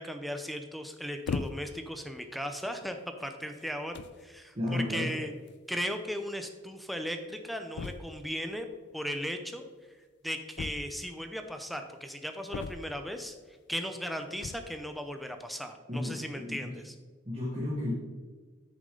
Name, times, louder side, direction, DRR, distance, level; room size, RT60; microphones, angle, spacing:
voice 1, 0.0-5.3 5.7-8.7 8.9-9.6 10.2-13.3 13.7-16.9, equal, ahead, 6 dB, 0.5 m, -37 dB
sound 1, 1.3-1.9 2.6-2.8 3.6-3.7 3.9-4.3 5.5-5.6 5.8-5.9 6.1-6.2 7.7-8.3 10.6-11.2 12.5-13.2 14.3-14.8, left 4 dB, 55° left, 0.4 m, -38 dB
voice 2, 4.5-5.1 15.9-16.7 17.2-17.9, left 1 dB, 30° right, -6 dB, 1.6 m, -33 dB
9.2 x 6.6 x 3.8 m, 1.4 s
head